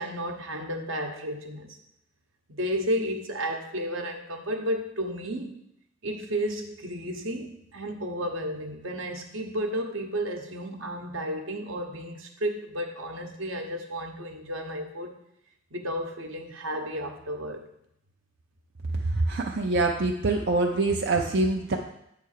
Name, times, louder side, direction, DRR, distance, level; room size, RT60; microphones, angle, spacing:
voice 1, 0.0-1.8 2.6-5.6 6.0-15.2 15.7-17.7, equal, 85° right, 4 dB, 1.1 m, -32 dB
voice 2, 18.9-21.8, right 2 dB, 60° right, 0 dB, 0.7 m, -25 dB
8.4 x 3.4 x 6.6 m, 0.77 s
head